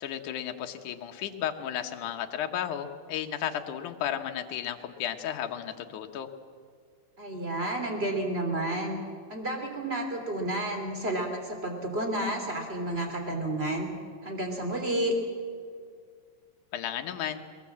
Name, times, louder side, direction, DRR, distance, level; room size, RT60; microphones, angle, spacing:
voice 1, 0.0-6.3 16.7-17.4, left 10 dB, 75° left, 5 dB, 2.5 m, -33 dB
voice 2, 7.2-9.0 9.3-13.9 14.2-15.1, right 1 dB, 20° right, 3 dB, 3.3 m, -31 dB
21.5 x 21.0 x 7.5 m, 2.1 s
omnidirectional pair, 3.6 m